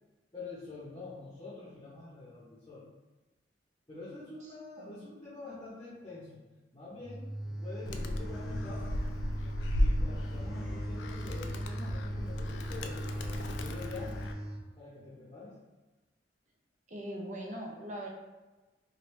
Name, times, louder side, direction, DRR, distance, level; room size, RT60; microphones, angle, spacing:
voice 1, 0.3-2.9 3.9-6.4 6.7-9.0 9.8-13.1 13.4-14.3 14.8-15.6, left 3 dB, 25° left, -9 dB, 0.7 m, -46 dB
voice 2, 4.8-5.1 16.9-18.1, equal, 45° right, -1 dB, 0.6 m, -41 dB
sound 1, 7.0-14.6, right 1 dB, ahead, 0.4 m, -39 dB
Animal, 7.9-14.3, left 1 dB, 70° left, 0.3 m, -35 dB
3.0 x 2.6 x 3.1 m, 1.2 s
head